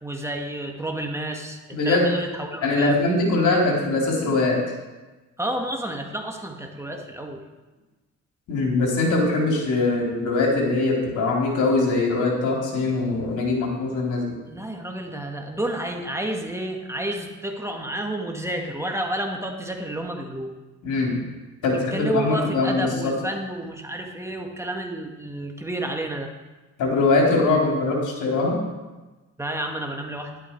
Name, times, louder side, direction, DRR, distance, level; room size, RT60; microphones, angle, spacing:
voice 1, 0.0-3.0 5.4-7.4 14.4-20.5 21.7-26.3 29.4-30.4, right 1 dB, 10° right, 2 dB, 1.8 m, -30 dB
voice 2, 1.7-2.1 2.6-4.6 8.5-14.4 20.8-21.2 21.6-23.1 26.8-28.6, left 3 dB, 80° left, -1 dB, 3.7 m, -22 dB
11.5 x 11.5 x 4.6 m, 1.2 s
cardioid pair, 90°, 30 cm